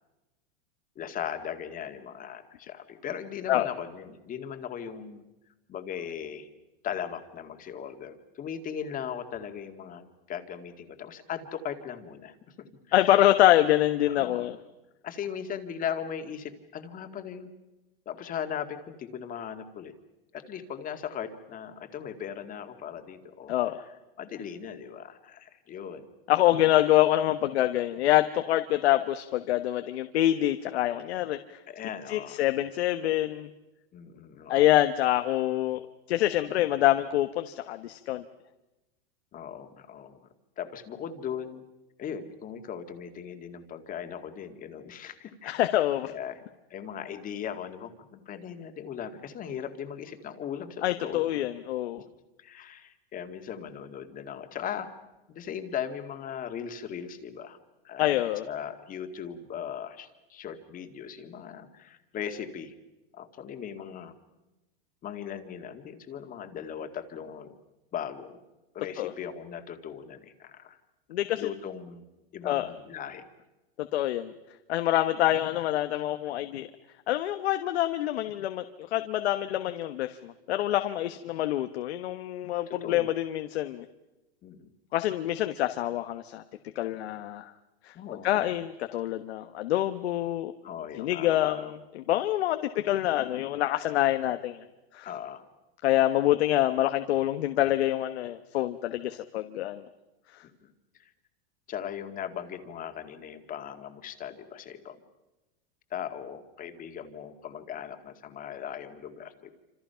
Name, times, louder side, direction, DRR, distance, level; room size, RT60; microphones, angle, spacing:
voice 1, 1.0-5.3 5.7-6.5 6.8-12.5 12.9-13.3 14.1-14.5 15.0-17.5 18.1-19.9 20.3-23.5 24.2-26.1 31.7-32.4 33.9-34.8 39.3-40.2 40.6-41.6 42.0-45.6 46.1-46.4 46.7-51.4 52.4-54.9 55.3-57.6 57.8-62.7 63.1-64.1 65.0-67.5 67.9-68.4 68.7-70.8 71.4-72.0 72.3-73.2 82.7-83.1 84.4-84.7 87.9-88.6 90.6-91.7 92.1-92.2 95.1-95.4 100.4-100.7 101.7-105.0 105.9-109.5, left 8 dB, 25° left, 7 dB, 2.1 m, -38 dB
voice 2, 12.9-14.6 23.5-23.8 26.3-31.6 32.1-33.5 34.5-35.8 36.1-38.2 45.4-46.1 50.8-52.0 58.0-58.5 69.0-69.1 71.1-71.4 72.4-72.7 73.9-74.3 74.7-76.7 77.1-78.6 78.9-83.8 84.9-86.4 86.7-87.5 87.8-87.9 88.2-90.5 91.0-94.6 94.9-95.1 95.8-99.9, left 14 dB, 80° left, 8 dB, 1.3 m, -26 dB
28.0 x 27.0 x 5.8 m, 1.0 s
supercardioid pair, 150°, 32 cm